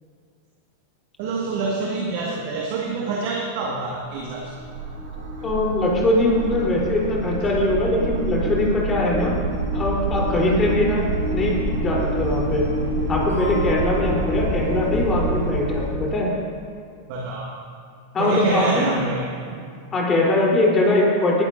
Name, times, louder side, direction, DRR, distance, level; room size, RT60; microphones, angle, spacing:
voice 1, 1.2-4.6 17.1-17.5 18.2-19.6, right 3 dB, 45° right, -1 dB, 1.7 m, -27 dB
sound 1, 4.1-15.9, right 2 dB, 65° right, 2.7 m, -26 dB
voice 2, 5.4-9.4 9.7-12.7 13.1-16.3 18.1-18.9 19.9-21.5, left 1 dB, 25° left, -3 dB, 3.5 m, -21 dB
sound 2, 13.3-15.8, right 1 dB, 85° left, 2.2 m, -40 dB
20.0 x 13.0 x 2.6 m, 2.3 s
figure-of-eight pair, 90°, 0 cm